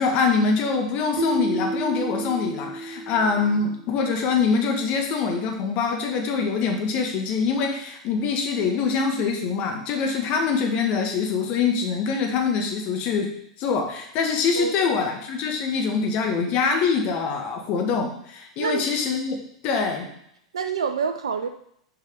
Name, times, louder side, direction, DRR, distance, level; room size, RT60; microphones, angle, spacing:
voice 1, 0.0-13.3 13.6-19.4 19.6-20.1, left 5 dB, 45° left, 3 dB, 1.6 m, -24 dB
Keyboard (musical), 1.2-4.0, right 2 dB, 40° right, 1.3 m, -31 dB
voice 2, 18.6-18.9 20.5-21.5, right 6 dB, 75° right, 6 dB, 0.5 m, -27 dB
6.6 x 4.6 x 5.2 m, 0.72 s
figure-of-eight pair, 95°, 3 cm